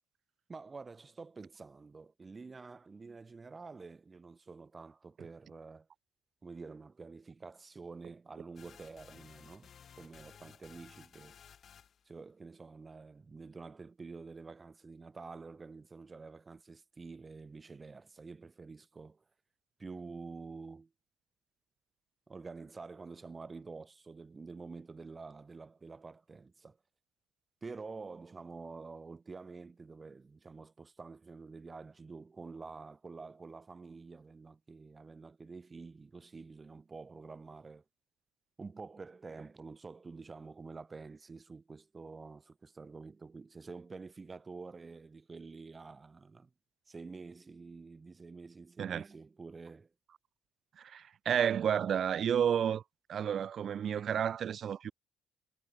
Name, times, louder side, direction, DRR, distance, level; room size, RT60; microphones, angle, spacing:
voice 1, 0.5-5.9 6.4-11.4 12.1-19.2 19.8-20.9 22.3-26.8 27.6-37.8 38.6-46.5 46.9-49.9, right 4 dB, 20° right, 2.9 m, -48 dB
sound 1, 8.6-12.1, left 8 dB, 40° left, 1.8 m, -57 dB
voice 2, 50.8-52.8 53.1-54.9, right 8 dB, 45° right, 0.6 m, -31 dB
cardioid pair, 160°, 0 cm